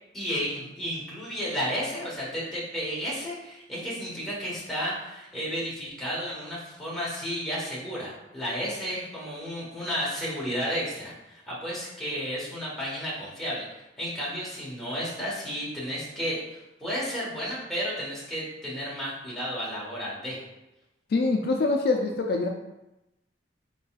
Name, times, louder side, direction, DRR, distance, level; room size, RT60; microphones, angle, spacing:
voice 1, 0.1-13.6 14.0-20.4, equal, ahead, -8 dB, 1.3 m, -32 dB
voice 2, 21.1-22.5, left 3 dB, 55° left, 2 dB, 0.3 m, -24 dB
4.5 x 3.9 x 2.4 m, 0.95 s
head